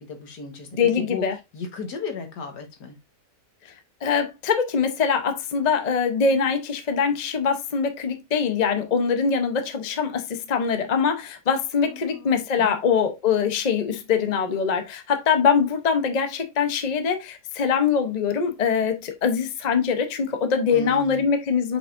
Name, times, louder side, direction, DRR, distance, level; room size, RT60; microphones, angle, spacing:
voice 1, 0.0-1.2 1.5-3.0 11.8-12.8 20.7-21.3, left 3 dB, 80° left, 2.0 m, -35 dB
voice 2, 0.7-1.3 4.0-21.8, left 6 dB, 35° left, 0.7 m, -23 dB
7.1 x 5.3 x 2.6 m
omnidirectional pair, 1.8 m